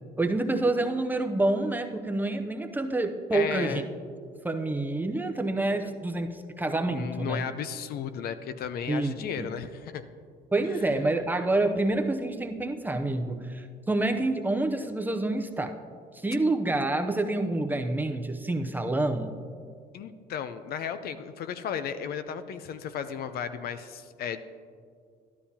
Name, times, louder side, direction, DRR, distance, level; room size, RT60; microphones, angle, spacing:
voice 1, 0.2-3.8 4.4-7.4 8.9-9.5 10.5-15.8 16.1-19.4, right 2 dB, 10° right, 5 dB, 0.6 m, -28 dB
voice 2, 3.3-3.9 6.9-10.0 10.7-10.9 19.9-24.4, left 8 dB, 65° left, 11 dB, 0.6 m, -34 dB
12.5 x 11.5 x 2.8 m, 2.2 s
cardioid pair, 110°, 17 cm